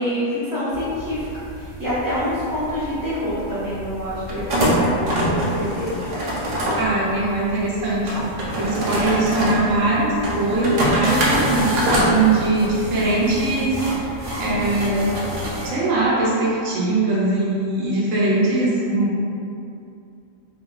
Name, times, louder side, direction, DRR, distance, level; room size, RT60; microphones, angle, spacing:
voice 1, 0.0-5.9, equal, 20° right, -12 dB, 0.6 m, -26 dB
sound 1, 0.7-15.7, equal, 90° right, 0.3 m, -25 dB
voice 2, 6.7-14.1 14.4-15.2 15.6-19.2, right 2 dB, 75° right, -6 dB, 1.1 m, -21 dB
2.7 x 2.4 x 2.2 m, 2.6 s
omnidirectional pair, 1.4 m